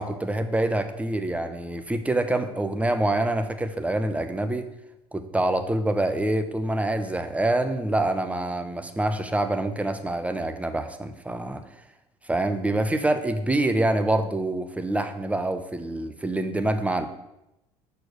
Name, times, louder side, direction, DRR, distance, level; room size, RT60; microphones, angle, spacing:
voice 1, 0.0-4.7 5.1-11.6 12.3-17.1, right 1 dB, 10° right, 9 dB, 0.9 m, -26 dB
6.3 x 4.7 x 6.5 m, 0.90 s
hypercardioid pair, 70°, 14 cm